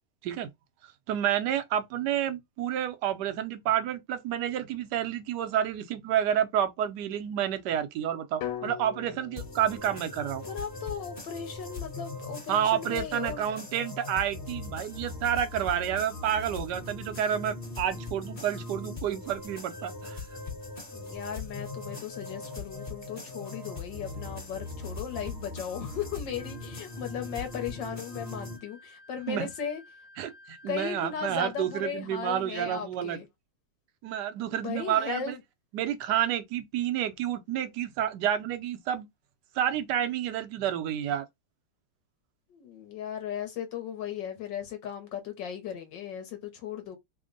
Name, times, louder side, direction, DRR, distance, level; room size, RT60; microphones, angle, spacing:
voice 1, 0.8-10.4 12.5-20.2 29.3-29.5 30.2-33.2 34.0-35.4 35.7-39.1 39.5-41.3, right 10 dB, 65° right, 1.1 m, -29 dB
sound 1, 8.4-12.5, left 11 dB, 80° left, 1.4 m, -42 dB
sound 2, 9.4-28.6, left 3 dB, 25° left, 0.9 m, -40 dB
voice 2, 10.4-13.4 20.9-29.8 30.7-33.3 34.5-35.4 42.5-47.0, left 8 dB, 65° left, 1.3 m, -37 dB
Wind instrument woodwind instrument, 26.4-31.8, left 3 dB, 15° right, 0.8 m, -54 dB
3.5 x 2.2 x 3.8 m
omnidirectional pair, 2.3 m